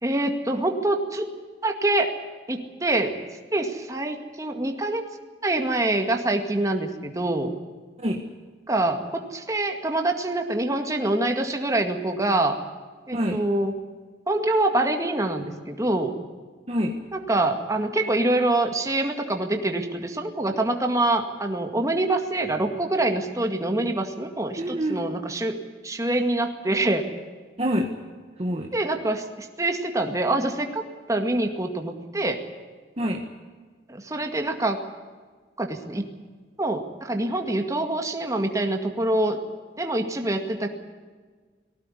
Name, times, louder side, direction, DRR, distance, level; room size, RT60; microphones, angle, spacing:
voice 1, 0.0-1.3 1.6-2.1 2.5-3.2 3.5-5.1 5.4-7.5 8.7-12.6 13.1-13.7 14.3-16.1 17.1-25.6 25.8-27.1 28.7-30.8 31.1-32.4 33.9-34.8 35.6-36.0 36.6-39.4 39.8-40.7, right 2 dB, 20° right, 4 dB, 2.0 m, -25 dB
voice 2, 8.0-8.3 13.1-13.4 16.7-17.0 24.6-25.1 27.6-28.0 28.4-28.7 33.0-33.3, equal, 35° right, 2 dB, 1.6 m, -26 dB
19.5 x 17.0 x 10.0 m, 1.4 s
head